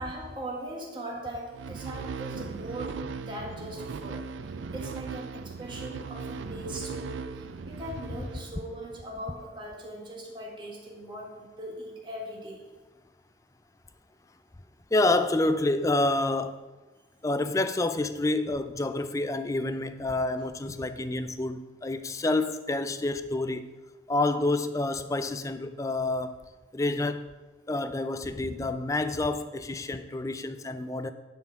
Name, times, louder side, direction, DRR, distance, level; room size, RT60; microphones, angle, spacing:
voice 1, 0.0-4.2 4.7-12.7, right 1 dB, 25° right, 1.7 m, -40 dB
sound 1, 1.5-9.0, right 4 dB, 80° right, 0.4 m, -38 dB
voice 2, 14.9-16.6 17.2-23.7 24.1-26.4 26.7-27.2 27.7-31.1, left 2 dB, 15° left, 0.4 m, -28 dB
10.5 x 4.5 x 5.8 m
head